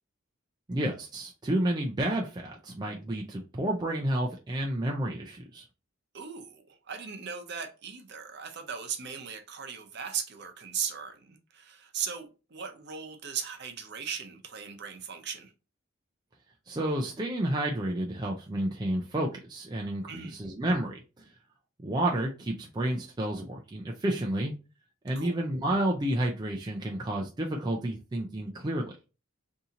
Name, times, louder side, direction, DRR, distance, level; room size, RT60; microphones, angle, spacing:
voice 1, 0.7-5.6 16.7-21.3 21.8-24.5 25.0-28.9, right 1 dB, 20° right, 0.3 m, -30 dB
voice 2, 6.1-15.5 20.1-20.4 25.2-25.4, right 7 dB, 50° right, 0.7 m, -38 dB
2.8 x 2.7 x 3.7 m
head